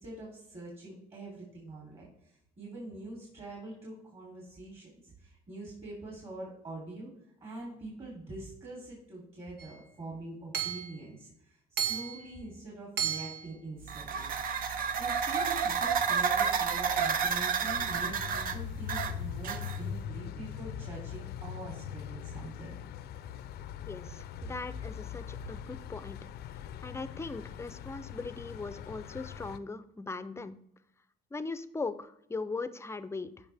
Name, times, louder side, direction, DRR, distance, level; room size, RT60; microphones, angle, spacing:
voice 1, 0.0-7.1 7.4-14.3 15.0-22.8 24.4-24.5, right 2 dB, 35° right, -4 dB, 3.3 m, -44 dB
Hammer / Chink clink, 9.6-9.7 10.5-10.9 11.8-12.2 13.0-13.5, right 8 dB, 85° right, 1.3 m, -33 dB
sound 1, 13.8-20.0, right 6 dB, 55° right, 0.8 m, -30 dB
sound 2, 17.7-29.6, left 10 dB, 70° left, 0.6 m, -42 dB
voice 2, 23.9-26.2 26.8-30.6 31.3-33.3, left 3 dB, 15° left, 12 dB, 0.6 m, -39 dB
14.0 x 5.4 x 3.4 m, 0.77 s
cardioid pair, 110°, 17 cm